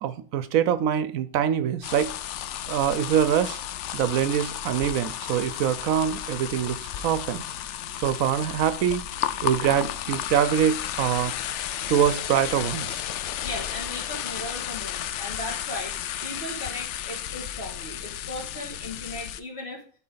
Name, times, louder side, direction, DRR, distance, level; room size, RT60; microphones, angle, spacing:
voice 1, 0.0-2.1 2.7-3.6 3.9-7.4 8.0-9.0 9.4-13.0, right 9 dB, 75° right, 1.0 m, -24 dB
sound 1, 1.8-19.4, left 11 dB, 65° left, 0.8 m, -33 dB
voice 2, 13.4-19.8, left 1 dB, 45° left, 2.5 m, -37 dB
12.5 x 4.4 x 3.9 m
omnidirectional pair, 1.5 m